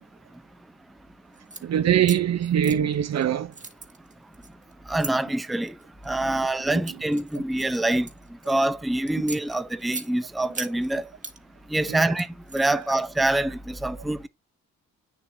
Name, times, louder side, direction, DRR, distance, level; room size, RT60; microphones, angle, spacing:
sound 1, 1.3-1.6 2.0-3.2 3.5-5.1 5.8-6.1 6.6-8.7 9.1-10.1 10.5-11.4 11.7-12.9, right 3 dB, 20° right, 1.5 m, -39 dB
voice 1, 1.6-3.5 11.9-12.0, right 9 dB, 50° right, 0.8 m, -22 dB
voice 2, 4.9-5.7 6.1-8.1 8.5-11.1 11.7-12.3 12.5-14.3, right 1 dB, ahead, 0.6 m, -25 dB
8.9 x 7.1 x 2.9 m
cardioid pair, 105°, 33 cm